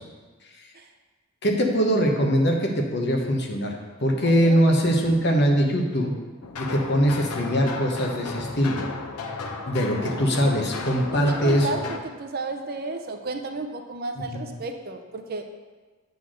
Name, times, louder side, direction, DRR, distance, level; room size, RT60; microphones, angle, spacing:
voice 1, 1.4-6.1 6.6-8.8 9.7-11.7 14.3-14.4, equal, 50° left, 2 dB, 1.0 m, -22 dB
voice 2, 4.2-4.6 9.9-10.2 11.1-15.4, right 3 dB, 40° right, 5 dB, 0.5 m, -33 dB
sound 1, 6.4-12.0, left 3 dB, 90° left, 0.7 m, -34 dB
8.2 x 4.0 x 6.3 m, 1.3 s
head